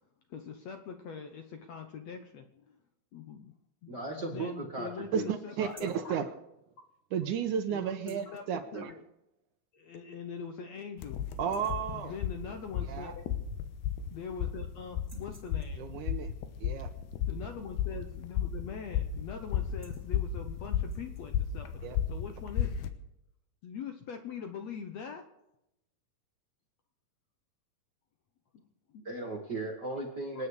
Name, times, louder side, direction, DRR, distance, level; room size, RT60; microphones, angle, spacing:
voice 1, 0.3-2.8 3.1-3.5 3.8-6.2 7.7-8.4 8.7-9.0 9.7-11.2 11.9-13.2 14.1-15.9 17.3-22.8 23.6-25.2 28.5-28.6 28.9-29.1 30.3-30.4, left 6 dB, 70° left, 6 dB, 1.7 m, -43 dB
voice 2, 3.9-5.2 29.0-30.5, right 2 dB, 45° right, 1 dB, 1.3 m, -36 dB
voice 3, 5.1-6.3 7.1-8.9 11.4-12.1 12.9-13.1 15.8-16.3 16.6-16.9 21.8-22.0, right 7 dB, 70° right, 8 dB, 2.1 m, -33 dB
sound 1, 5.6-6.1 7.9-8.4 9.8-9.9 10.4-10.5 10.9-11.1 11.3-11.9 13.3-13.4 13.6-14.4 14.9-15.9 18.2-18.5 18.8-19.1 19.5-20.1 20.8-21.3, right 2 dB, 10° right, 2.6 m, -59 dB
sound 2, 11.0-22.9, left 9 dB, 85° left, 3.0 m, -34 dB
27.0 x 9.7 x 4.9 m, 0.87 s
omnidirectional pair, 4.4 m